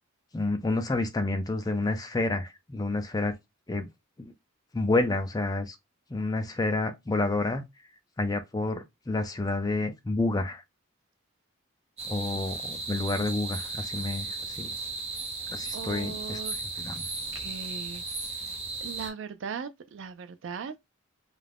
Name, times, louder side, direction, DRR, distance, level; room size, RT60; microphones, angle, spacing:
voice 1, 0.3-3.4 3.7-3.9 4.2-4.3 4.7-5.8 6.1-7.6 8.2-10.6 12.1-14.7 15.5-16.4 16.8-17.0, left 2 dB, 20° left, 0.3 m, -29 dB
sound 1, 12.0-19.1, right 3 dB, 30° right, 0.8 m, -36 dB
voice 2, 15.7-16.6 17.3-18.0 18.3-18.5 18.8-20.8, right 6 dB, 60° right, 0.3 m, -38 dB
2.4 x 2.1 x 3.3 m
head